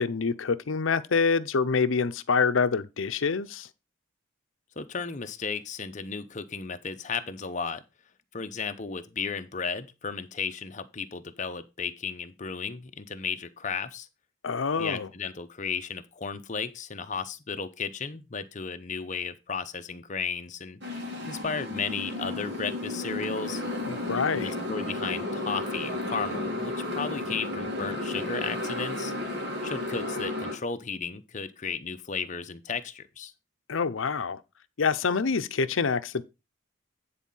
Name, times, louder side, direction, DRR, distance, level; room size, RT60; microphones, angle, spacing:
voice 1, 0.0-3.7 14.4-15.1 23.9-24.5 33.7-34.4 34.8-36.2, left 5 dB, 75° left, 0.6 m, -26 dB
voice 2, 4.8-7.8 8.3-14.1 14.8-20.8 21.3-23.6 24.3-29.1 29.6-33.3, left 5 dB, 35° left, 0.7 m, -34 dB
Motorcycle, 20.8-30.5, left 2 dB, 55° right, 2.6 m, -33 dB
9.9 x 4.2 x 5.4 m
head